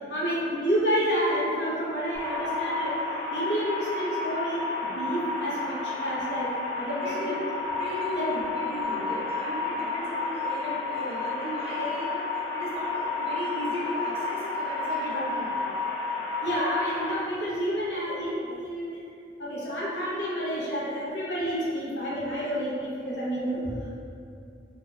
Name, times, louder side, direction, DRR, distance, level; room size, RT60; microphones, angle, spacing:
voice 1, 0.0-3.0 3.3-7.5 8.2-8.3 11.8-11.9 15.1-15.3 16.4-19.0 19.4-23.9, equal, 75° left, -8 dB, 0.8 m, -29 dB
sound 1, 2.1-17.1, left 3 dB, 25° left, 0.5 m, -31 dB
voice 2, 6.9-7.4 7.8-15.6, equal, 35° right, -8 dB, 0.7 m, -36 dB
2.6 x 2.1 x 3.4 m, 2.5 s
head